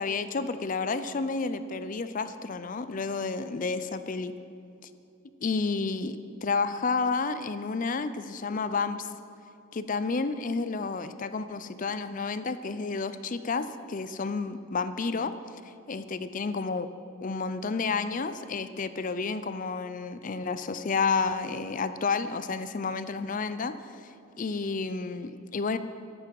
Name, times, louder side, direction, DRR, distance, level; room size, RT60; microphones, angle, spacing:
voice 1, 0.0-4.3 5.4-9.1 9.7-15.3 15.9-16.9 17.2-23.9 24.4-25.8, left 4 dB, 40° left, 12 dB, 0.5 m, -30 dB
13.5 x 11.5 x 4.7 m, 2.5 s
head